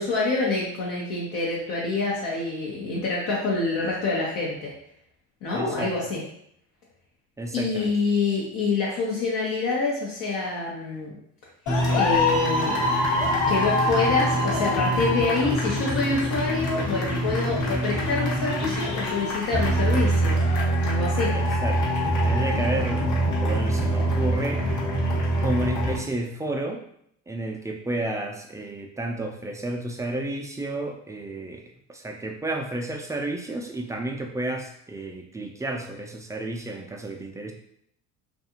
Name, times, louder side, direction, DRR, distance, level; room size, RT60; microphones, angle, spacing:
voice 1, 0.0-4.7 5.4-6.2 7.5-11.1 11.9-12.8 13.5-20.4 20.8-21.3, left 3 dB, 65° left, -5 dB, 0.8 m, -26 dB
voice 2, 5.5-5.9 7.4-7.9 21.3-23.1 23.4-24.6 25.4-26.8 27.3-31.6 31.9-37.5, right 2 dB, 10° right, 1 dB, 0.3 m, -31 dB
sound 1, 11.7-26.0, equal, 50° left, 1.2 m, -24 dB
2.5 x 2.4 x 2.8 m, 0.70 s
supercardioid pair, 80°, 37 cm